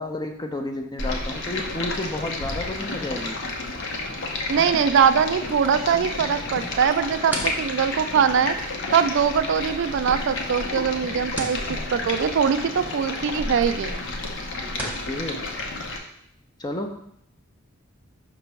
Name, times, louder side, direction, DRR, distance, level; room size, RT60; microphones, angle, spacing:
voice 1, 0.0-3.4 14.8-15.4 16.6-16.9, left 2 dB, 20° left, 4 dB, 0.6 m, -31 dB
Stream, 1.0-16.0, left 2 dB, 65° left, 0.9 m, -31 dB
voice 2, 4.5-8.5 8.9-11.6 11.9-13.9, right 7 dB, 60° right, 11 dB, 0.3 m, -22 dB
sound 1, 6.7-15.1, right 1 dB, 10° right, 0.8 m, -41 dB
6.0 x 3.0 x 5.5 m, 0.71 s
head